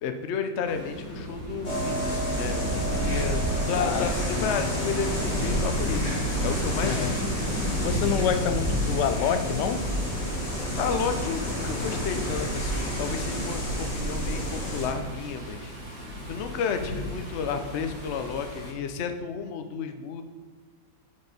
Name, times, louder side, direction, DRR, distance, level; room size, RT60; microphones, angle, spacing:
voice 1, 0.0-3.4 3.7-7.2 10.8-15.7 16.3-20.2, left 6 dB, 55° left, 0.8 m, -32 dB
sound 1, 0.6-18.7, equal, 75° right, 3.6 m, -34 dB
sound 2, 1.6-14.9, equal, 25° left, 2.2 m, -30 dB
voice 2, 3.8-4.5 6.8-7.2 7.8-9.8, left 9 dB, 80° left, 1.2 m, -28 dB
8.7 x 6.9 x 4.1 m
omnidirectional pair, 1.9 m